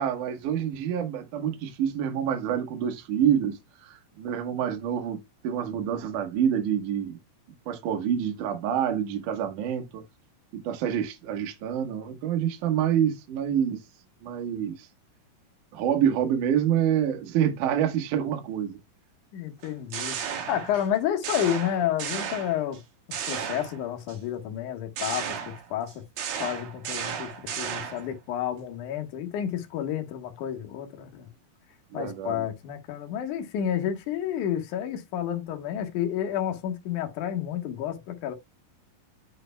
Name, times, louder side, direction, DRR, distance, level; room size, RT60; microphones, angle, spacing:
voice 1, 0.0-7.2 7.7-10.0 10.5-13.8 14.2-14.9 15.7-18.8 31.9-32.4, right 9 dB, 85° right, 1.8 m, -27 dB
voice 2, 19.3-20.2 20.5-22.8 23.3-26.0 26.4-31.3 31.9-38.3, left 10 dB, 70° left, 2.0 m, -30 dB
sound 1, 19.6-20.9 21.2-22.8 23.1-24.2 25.0-28.1, right 8 dB, 60° right, 2.8 m, -34 dB
9.6 x 5.6 x 2.2 m
omnidirectional pair, 5.5 m